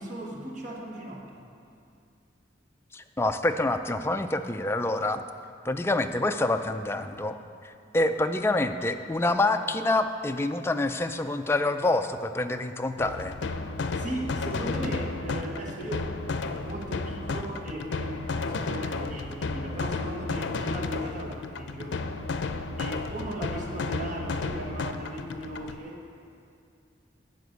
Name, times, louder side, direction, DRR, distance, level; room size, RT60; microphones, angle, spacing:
voice 1, 0.0-1.4 13.9-22.0 22.8-26.0, right 1 dB, 45° right, -1 dB, 1.4 m, -37 dB
voice 2, 2.9-5.2 5.6-7.4 7.6-13.4, left 2 dB, 15° left, 7 dB, 0.4 m, -27 dB
sound 1, 13.0-25.8, left 3 dB, 85° left, 0.5 m, -32 dB
9.4 x 6.1 x 8.1 m, 2.4 s
head